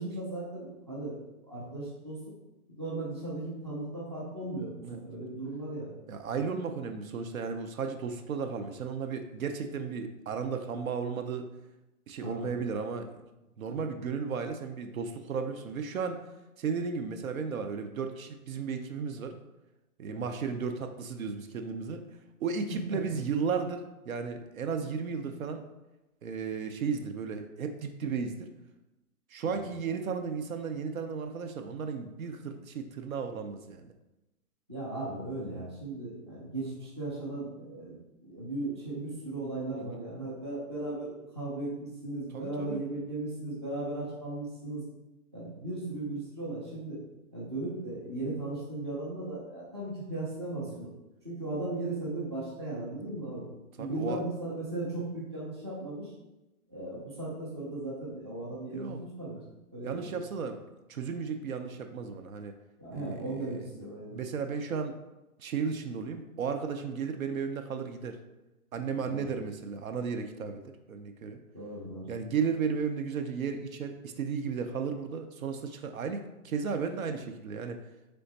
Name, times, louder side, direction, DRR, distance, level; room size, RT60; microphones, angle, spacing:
voice 1, 0.0-2.2 2.7-4.7 5.0-5.9 12.2-12.5 20.1-20.3 22.9-23.0 29.4-29.7 34.7-38.0 38.2-44.8 45.3-47.0 47.3-50.9 51.2-53.5 53.8-56.1 56.7-59.4 59.7-60.2 62.8-64.2 69.0-69.3 71.5-72.1, right 2 dB, 20° right, -7 dB, 0.5 m, -37 dB
voice 2, 6.1-11.5 12.1-13.1 13.6-16.2 16.6-19.4 20.0-22.1 22.4-25.6 26.2-28.5 29.3-33.9 39.8-40.0 42.3-42.8 53.0-53.1 53.8-54.2 58.7-59.0 59.8-60.6 60.9-62.5 62.9-63.7 64.1-64.9 65.4-68.2 68.7-70.6 70.9-71.4 72.1-77.8, right 5 dB, 65° right, 7 dB, 0.6 m, -34 dB
3.8 x 3.4 x 3.9 m, 0.98 s
hypercardioid pair, 170°, 44 cm